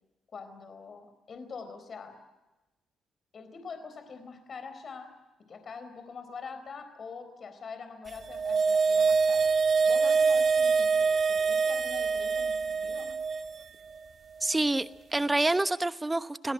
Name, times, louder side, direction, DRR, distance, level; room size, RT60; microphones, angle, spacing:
voice 1, 0.3-2.2 3.3-5.1 5.5-9.5 9.9-13.1, left 5 dB, 45° left, 8 dB, 4.0 m, -44 dB
sound 1, 8.2-13.6 13.9-14.0, right 5 dB, 50° right, 1.7 m, -25 dB
voice 2, 14.4-16.5, right 2 dB, 15° right, 13 dB, 1.0 m, -27 dB
24.5 x 17.5 x 9.8 m, 1.1 s
cardioid pair, 90°, 0 cm